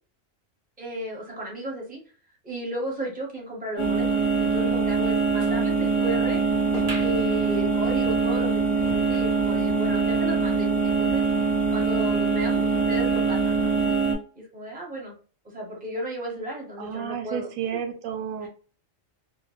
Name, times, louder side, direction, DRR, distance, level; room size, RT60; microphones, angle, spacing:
voice 1, 0.8-2.0 2.4-6.4 6.9-11.2 11.7-13.7 14.3-15.1 15.4-17.5 18.4-18.5, right 1 dB, 10° right, -3 dB, 0.8 m, -34 dB
sound 1, 3.8-14.1, right 4 dB, 30° left, 0.7 m, -23 dB
sound 2, 6.7-9.7 10.1-10.2 10.4-10.5 11.3-11.4, right 1 dB, 45° right, 1.1 m, -40 dB
voice 2, 16.8-18.5, right 8 dB, 85° right, 7 dB, 1.0 m, -31 dB
3.0 x 2.2 x 2.3 m, 0.40 s
omnidirectional pair, 1.4 m